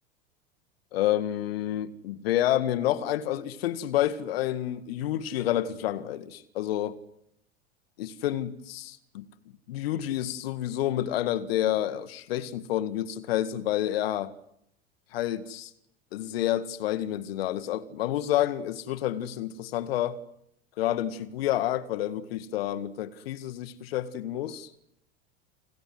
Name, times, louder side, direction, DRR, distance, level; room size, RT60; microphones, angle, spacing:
voice 1, 0.9-7.0 8.0-9.3 9.7-14.3 15.1-15.7 16.1-20.2 20.8-24.7, left 12 dB, 65° left, 2.0 m, -29 dB
29.5 x 21.0 x 9.5 m
figure-of-eight pair, 80°, 32 cm